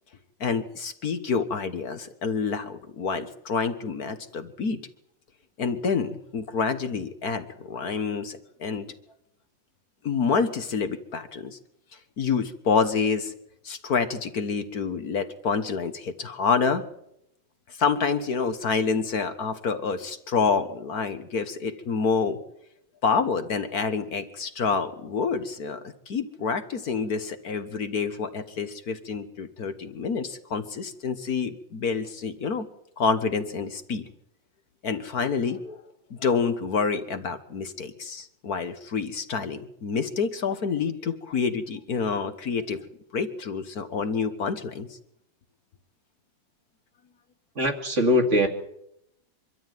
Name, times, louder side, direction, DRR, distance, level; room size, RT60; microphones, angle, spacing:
voice 1, 0.4-4.8 5.6-8.9 10.0-11.6 12.2-13.3 13.6-16.8 17.8-22.4 23.0-25.8 26.1-32.7 33.0-34.0 34.8-35.8 36.1-42.8 43.1-44.9, left 5 dB, 60° left, 9 dB, 1.7 m, -27 dB
voice 2, 47.6-48.5, left 1 dB, 40° right, 5 dB, 2.5 m, -21 dB
24.5 x 13.0 x 9.2 m, 0.80 s
omnidirectional pair, 1.9 m